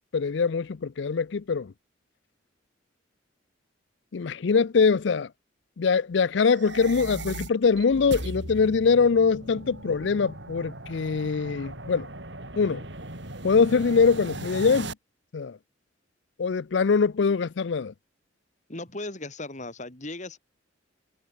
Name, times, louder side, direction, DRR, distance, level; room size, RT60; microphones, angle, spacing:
voice 1, 0.0-1.7 4.1-5.3 5.8-12.1 12.6-12.9 13.4-14.9 15.3-15.6 16.4-17.9, left 5 dB, 65° left, 0.5 m, -23 dB
sound 1, 6.4-14.9, right 2 dB, 65° right, 5.4 m, -38 dB
voice 2, 18.7-20.4, left 2 dB, 40° left, 3.3 m, -37 dB
head